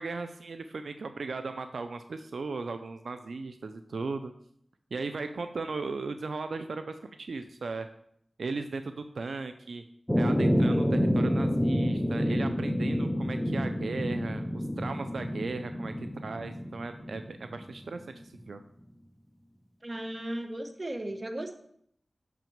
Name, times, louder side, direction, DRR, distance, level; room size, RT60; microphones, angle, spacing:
voice 1, 0.0-4.3 4.9-7.9 8.4-9.8 10.2-18.6, right 4 dB, 80° right, 8 dB, 0.5 m, -37 dB
sound 1, 10.1-17.9, equal, 5° left, 0.8 m, -28 dB
voice 2, 19.8-21.6, right 1 dB, 35° right, 6 dB, 1.2 m, -36 dB
6.0 x 6.0 x 7.2 m, 0.69 s
cardioid pair, 55°, 0 cm